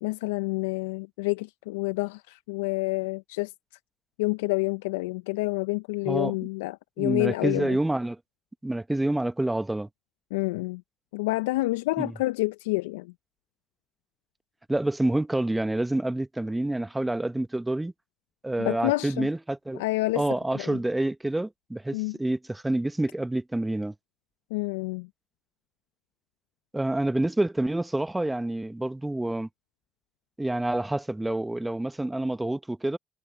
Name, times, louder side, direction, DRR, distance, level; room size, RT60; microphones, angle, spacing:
voice 1, 0.0-3.5 4.2-7.8 10.3-10.8 11.1-13.1 18.6-19.3 19.8-20.2 20.5-20.8 21.9-22.2 24.5-25.1, left 22 dB, 80° left, 0.7 m, -28 dB
voice 2, 7.0-8.2 8.6-9.9 12.0-12.1 14.7-17.9 18.4-19.8 20.1-23.9 26.7-29.5 30.4-33.0, right 1 dB, 10° right, 1.0 m, -28 dB
hypercardioid pair, 50°, 0 cm